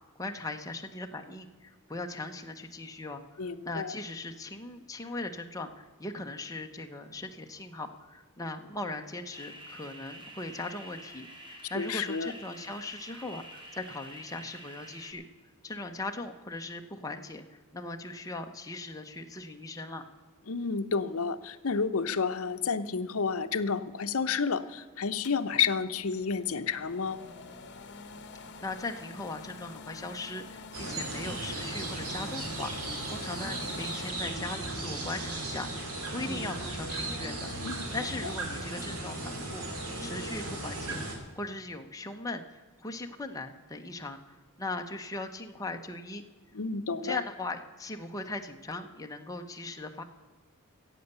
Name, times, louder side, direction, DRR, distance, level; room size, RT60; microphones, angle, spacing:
voice 1, 0.2-15.2 15.6-20.0 28.6-37.5 37.9-46.2 47.0-50.0, left 2 dB, 15° left, 4 dB, 0.9 m, -39 dB
voice 2, 3.4-3.9 11.7-12.3 20.5-27.2 37.6-37.9 46.5-47.2, left 5 dB, 70° left, 10 dB, 0.7 m, -30 dB
sound 1, 9.3-15.1, equal, 20° right, 1.8 m, -48 dB
sound 2, 25.2-34.1, left 4 dB, 55° left, 1.1 m, -47 dB
sound 3, 30.7-41.1, right 2 dB, 85° right, 2.7 m, -36 dB
15.0 x 8.1 x 6.8 m, 1.4 s
head